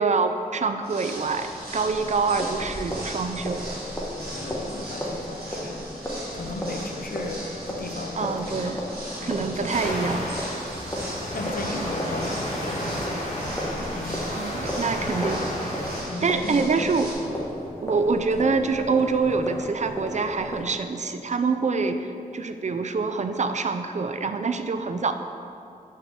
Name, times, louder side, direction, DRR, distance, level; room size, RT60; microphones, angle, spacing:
voice 1, 0.0-3.8 8.2-8.8 9.2-10.3 14.3-15.5 16.2-17.1 17.8-25.1, right 4 dB, 50° right, 8 dB, 0.4 m, -26 dB
sound 1, 0.8-17.1, right 1 dB, 85° right, 1.6 m, -39 dB
sound 2, 1.1-20.7, equal, 15° left, 1.2 m, -35 dB
voice 2, 4.3-5.9 6.3-8.9 9.2-10.1 10.9-14.2 15.1-15.2 15.6-16.7 17.2-17.3, left 2 dB, 70° left, 3 dB, 0.7 m, -36 dB
sound 3, 9.7-16.0, equal, 45° left, 1.5 m, -32 dB
5.8 x 4.3 x 6.0 m, 2.5 s
wide cardioid pair, 80°, 15 cm